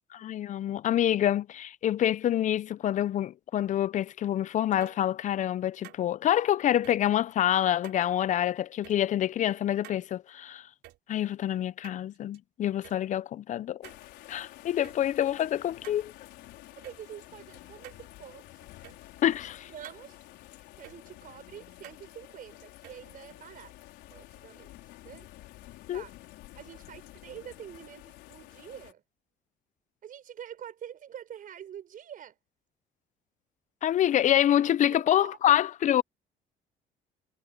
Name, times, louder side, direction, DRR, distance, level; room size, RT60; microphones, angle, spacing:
voice 1, 0.1-10.7 11.1-13.9 14.3-16.1 19.2-19.7 25.9-26.0 33.8-36.0, left 11 dB, 45° left, 0.5 m, -26 dB
sound 1, 4.7-5.0 5.8-6.0 6.8-7.0 7.8-8.1 8.8-9.0 9.8-10.0 10.8-11.0 11.8-12.4 12.8-13.0 13.8-14.1 14.8-15.0 15.8-16.0 16.8-17.0 17.8-18.1 18.8-19.0 19.8-20.0 20.8-21.0 21.8-22.1 22.8-23.0, right 16 dB, 80° right, 4.5 m, -49 dB
sound 2, 13.8-28.9, left 16 dB, 85° left, 4.6 m, -50 dB
voice 2, 16.7-18.7 19.7-23.7 24.1-24.8 25.0-25.3 25.9-26.2 26.5-29.0 30.0-32.4 34.9-35.6, right 9 dB, 55° right, 6.3 m, -46 dB
cardioid pair, 110°, 17 cm